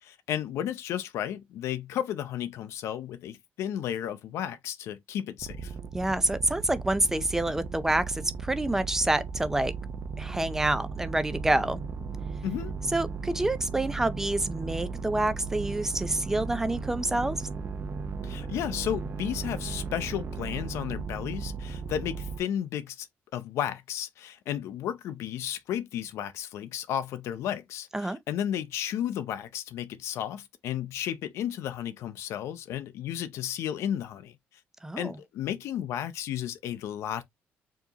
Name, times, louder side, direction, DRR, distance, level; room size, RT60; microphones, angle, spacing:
voice 1, 0.0-5.7 12.4-12.7 18.2-23.1 23.3-34.4 35.0-37.2, left 10 dB, 80° left, 0.6 m, -33 dB
sound 1, 5.4-22.4, right 5 dB, 40° right, 0.7 m, -36 dB
voice 2, 5.9-9.7 10.2-11.8 12.9-17.4 27.9-28.2 34.8-35.2, right 1 dB, 10° right, 0.5 m, -27 dB
4.7 x 2.9 x 2.8 m
cardioid pair, 125°, 5 cm